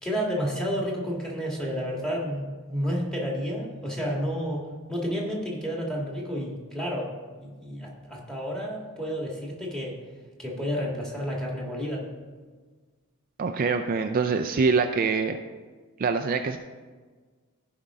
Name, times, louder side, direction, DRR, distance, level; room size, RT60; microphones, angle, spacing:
voice 1, 0.0-4.6 4.9-7.1 7.4-10.0 10.4-12.1, equal, 5° left, -3 dB, 1.8 m, -30 dB
voice 2, 13.4-15.4 16.0-16.6, right 4 dB, 40° right, 6 dB, 0.4 m, -24 dB
15.5 x 5.3 x 3.6 m, 1.4 s
head